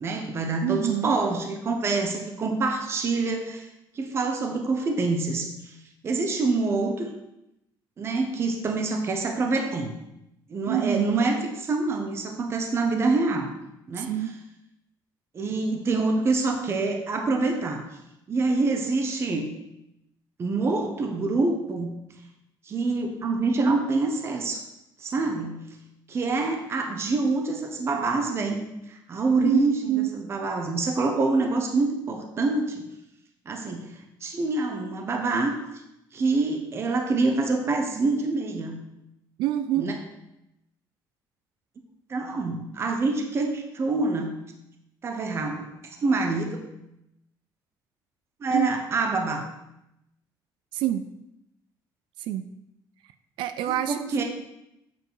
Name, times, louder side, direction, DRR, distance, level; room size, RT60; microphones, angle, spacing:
voice 1, 0.0-3.7 3.9-5.5 6.0-7.1 8.0-10.0 10.5-13.5 13.9-14.2 15.3-17.8 18.3-19.6 20.4-21.9 22.7-24.6 25.0-25.8 26.1-32.8 33.5-35.6 36.1-38.8 39.8-40.0 42.1-44.4 45.0-45.7 46.0-46.6 48.4-49.5 53.9-54.2, right 3 dB, 35° right, 3 dB, 1.0 m, -26 dB
voice 2, 0.6-1.1 10.7-11.2 14.0-14.3 29.4-30.1 39.4-39.9 48.5-48.7 50.7-51.0 52.2-52.4 53.4-54.2, right 12 dB, 85° right, 11 dB, 0.4 m, -26 dB
8.0 x 4.9 x 4.7 m, 0.86 s
cardioid pair, 145°, 8 cm